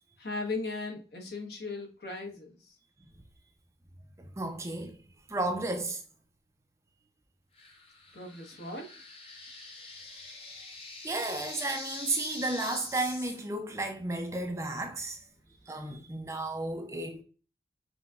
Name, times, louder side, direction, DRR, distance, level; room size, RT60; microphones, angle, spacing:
voice 1, 0.2-2.5 8.1-8.9, left 3 dB, 65° left, 1.2 m, -37 dB
voice 2, 4.2-5.0 5.3-6.0 11.0-15.2 15.7-17.2, right 2 dB, 15° right, 0.5 m, -33 dB
sound 1, 7.6-13.4, left 3 dB, 35° left, 0.8 m, -44 dB
5.7 x 2.8 x 2.3 m
head